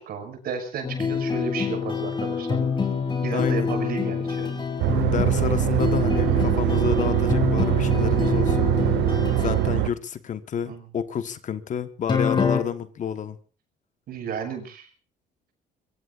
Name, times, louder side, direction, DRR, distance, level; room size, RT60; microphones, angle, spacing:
voice 1, 0.0-2.7 3.2-4.6 6.2-7.0 7.7-7.9 8.5-8.9 10.7-10.9 14.1-14.9, right 6 dB, 65° right, 6.2 m, -34 dB
sound 1, 0.8-9.7 12.1-12.6, left 5 dB, 25° left, 4.4 m, -26 dB
voice 2, 3.3-3.7 5.1-8.7 9.4-13.4, left 8 dB, 45° left, 1.4 m, -29 dB
sound 2, 4.8-9.9, right 18 dB, 80° right, 0.8 m, -23 dB
24.5 x 23.0 x 2.6 m
cardioid pair, 110°, 17 cm